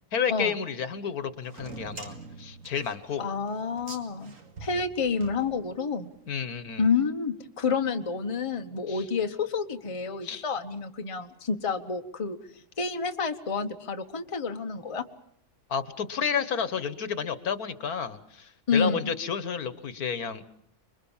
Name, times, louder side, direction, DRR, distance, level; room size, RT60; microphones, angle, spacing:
voice 1, 0.1-3.3 6.3-6.9 8.9-9.0 10.2-10.4 15.7-20.4, left 7 dB, 70° left, 13 dB, 1.7 m, -31 dB
sound 1, 1.5-6.0, right 3 dB, 55° right, 2.4 m, -45 dB
voice 2, 3.2-4.3 4.6-6.1 6.8-12.4 12.8-15.0 18.7-19.1, left 5 dB, 25° left, 6 dB, 1.1 m, -29 dB
26.0 x 22.5 x 7.2 m, 0.66 s
omnidirectional pair, 1.6 m